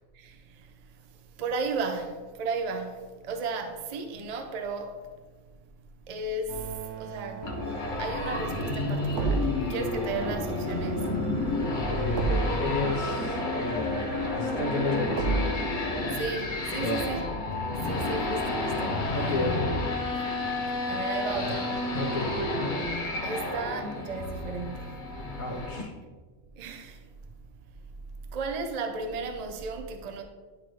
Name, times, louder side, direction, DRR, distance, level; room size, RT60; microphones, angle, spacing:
voice 1, 0.1-5.1 6.1-7.5 8.0-11.4 16.1-17.3 17.7-19.5 20.7-21.8 23.2-25.1 26.6-27.1 27.4-27.5 28.2-30.2, right 4 dB, 40° right, 0.6 m, -35 dB
sound 1, 6.5-15.5, right 4 dB, 65° right, 1.1 m, -35 dB
sound 2, 7.4-25.8, left 2 dB, 40° left, 1.0 m, -31 dB
voice 2, 11.9-15.5 16.8-17.0 19.1-19.7 21.5-21.6 21.9-22.3 25.4-25.9, left 3 dB, 85° left, 1.4 m, -31 dB
11.0 x 3.9 x 3.2 m
omnidirectional pair, 1.4 m